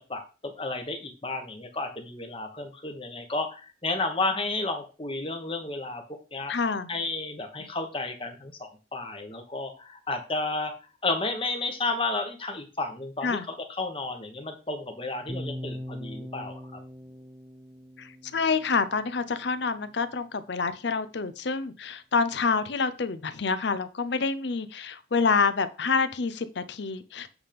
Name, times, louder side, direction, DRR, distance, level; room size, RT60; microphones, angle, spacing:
voice 1, 0.1-6.0 6.3-6.5 6.9-10.7 11.0-16.8, left 3 dB, 25° left, 4 dB, 1.1 m, -32 dB
voice 2, 6.5-6.9 13.2-13.4 18.0-27.3, left 4 dB, 60° left, 13 dB, 0.6 m, -27 dB
sound 1, 15.3-19.4, equal, 15° right, 0.4 m, -41 dB
8.1 x 3.5 x 5.2 m, 0.33 s
head